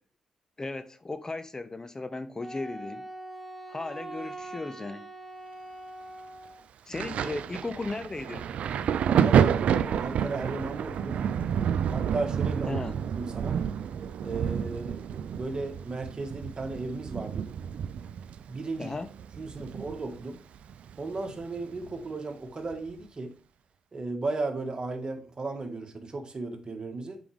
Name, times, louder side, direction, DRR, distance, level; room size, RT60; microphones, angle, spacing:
voice 1, 0.6-3.1 3.7-5.1 6.9-8.5 12.6-13.0 18.8-19.1 19.6-19.7, left 3 dB, 25° left, 0.5 m, -36 dB
Wind instrument woodwind instrument, 2.4-6.7, right 2 dB, 5° right, 1.3 m, -42 dB
Thunder, 6.9-20.3 20.5-21.9 22.7-22.9, right 8 dB, 65° right, 0.4 m, -29 dB
voice 2, 9.1-11.2 11.9-12.8 13.1-13.6 14.2-17.5 18.5-19.0 19.4-20.4 21.0-23.3 23.9-27.2, right 3 dB, 35° right, 1.7 m, -35 dB
6.9 x 5.1 x 3.5 m
hypercardioid pair, 45°, 2 cm